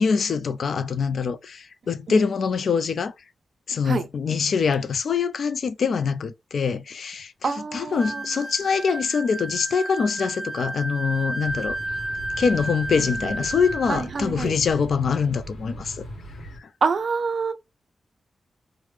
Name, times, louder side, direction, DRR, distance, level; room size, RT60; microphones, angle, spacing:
voice 1, 0.0-3.1 3.7-11.8 12.4-16.1 16.6-16.7, left 5 dB, 55° left, 0.3 m, -24 dB
voice 2, 7.4-8.2 12.9-13.3 13.9-14.5 16.8-17.5, right 5 dB, 45° right, 0.4 m, -27 dB
sound 1, 8.0-14.1, right 1 dB, 20° left, 1.3 m, -32 dB
sound 2, 11.4-16.6, equal, 85° left, 0.9 m, -39 dB
3.2 x 2.1 x 3.2 m
wide cardioid pair, 170°, 0 cm